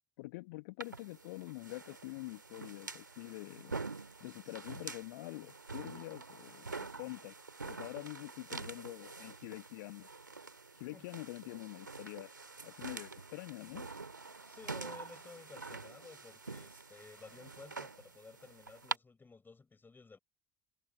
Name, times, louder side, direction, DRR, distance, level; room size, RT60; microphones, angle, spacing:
voice 1, 0.2-3.7 4.2-7.3 7.6-10.1 10.7-12.3 12.6-13.9, left 23 dB, 65° left, 1.1 m, -46 dB
sound 1, 0.8-19.0, right 4 dB, 85° right, 2.5 m, -46 dB
voice 2, 14.5-20.2, left 4 dB, 20° left, 6.5 m, -54 dB
figure-of-eight pair, 65°, 10 cm